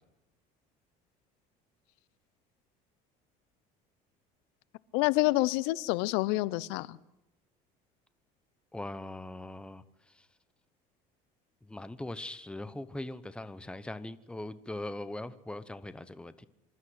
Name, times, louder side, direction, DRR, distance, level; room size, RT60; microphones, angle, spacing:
voice 1, 4.9-7.0, left 19 dB, 90° left, 0.7 m, -27 dB
voice 2, 8.7-9.8 10.2-10.3 11.6-16.5, left 1 dB, 5° left, 0.9 m, -40 dB
26.0 x 13.0 x 8.0 m
cardioid pair, 130°, 17 cm